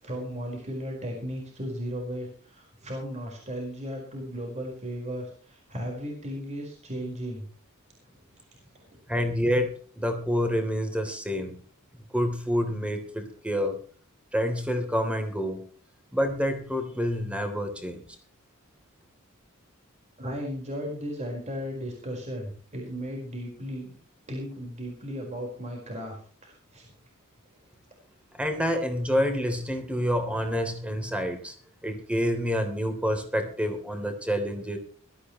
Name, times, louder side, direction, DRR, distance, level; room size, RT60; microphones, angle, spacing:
voice 1, 0.0-7.5 8.7-9.0 20.2-23.9 24.3-26.9, equal, 30° right, 0 dB, 4.8 m, -36 dB
voice 2, 9.1-11.6 12.1-13.8 14.3-15.6 16.1-18.1 28.3-31.5 31.8-34.8, equal, 5° right, 5 dB, 3.3 m, -28 dB
21.0 x 13.5 x 3.1 m, 0.42 s
head